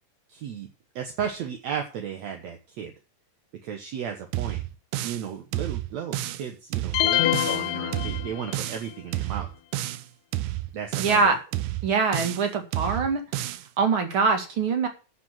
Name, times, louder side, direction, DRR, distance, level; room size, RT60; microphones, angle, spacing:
voice 1, 0.3-0.7 1.0-2.9 3.6-4.6 5.0-9.5 10.7-11.2, right 8 dB, 65° right, 4 dB, 2.3 m, -34 dB
sound 1, 4.3-5.3 5.5-6.5 6.7-7.7 7.9-8.9 9.1-10.1 10.3-11.3 11.5-12.5 12.7-13.7, right 15 dB, 80° right, 2.2 m, -30 dB
sound 2, 6.9-8.8, left 14 dB, 75° left, 1.8 m, -25 dB
voice 2, 11.0-11.4 11.8-13.2 13.8-14.9, right 4 dB, 45° right, 5 dB, 2.8 m, -23 dB
9.6 x 7.0 x 7.5 m, 0.33 s
omnidirectional pair, 3.6 m